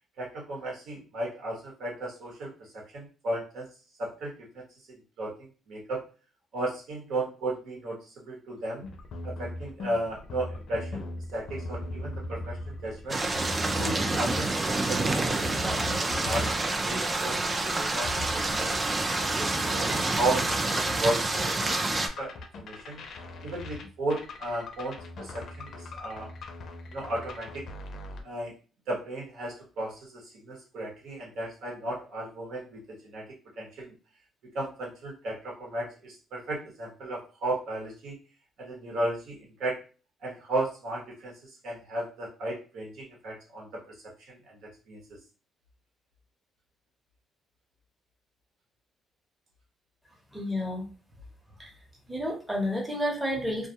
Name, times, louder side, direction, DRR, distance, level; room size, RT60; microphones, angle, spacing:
voice 1, 0.2-3.7 4.0-5.3 5.7-6.0 6.5-8.8 9.2-11.0 11.3-13.2 13.8-18.1 18.5-18.8 19.2-21.8 22.2-23.0 23.4-26.3 26.9-27.6 28.2-28.5 28.9-33.3 33.6-33.9 34.5-38.1 38.6-39.8 40.2-41.4 41.6-43.8 44.3-45.0, right 1 dB, 75° right, -2 dB, 1.1 m, -35 dB
sound 1, 8.8-28.2, left 2 dB, 55° left, 0.5 m, -39 dB
sound 2, 13.1-22.1, right 2 dB, 25° right, 0.3 m, -28 dB
voice 2, 50.3-50.8 51.6-51.7 52.1-53.7, left 1 dB, 5° right, -2 dB, 0.8 m, -30 dB
2.3 x 2.2 x 2.7 m, 0.36 s
cardioid pair, 120°, 0 cm